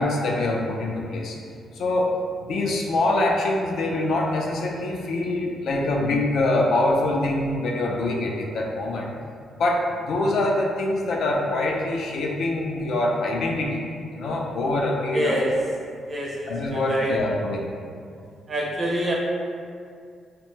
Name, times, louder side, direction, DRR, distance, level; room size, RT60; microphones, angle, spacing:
voice 1, 0.0-1.4 1.8-2.1 2.5-9.1 9.6-13.8 14.1-15.4 16.5-17.6, left 2 dB, 70° left, -1 dB, 0.3 m, -24 dB
voice 2, 15.1-15.5 16.1-17.1 18.5-19.1, equal, 30° right, -3 dB, 0.5 m, -26 dB
2.6 x 2.2 x 2.9 m, 2.3 s
cardioid pair, 125°, 0 cm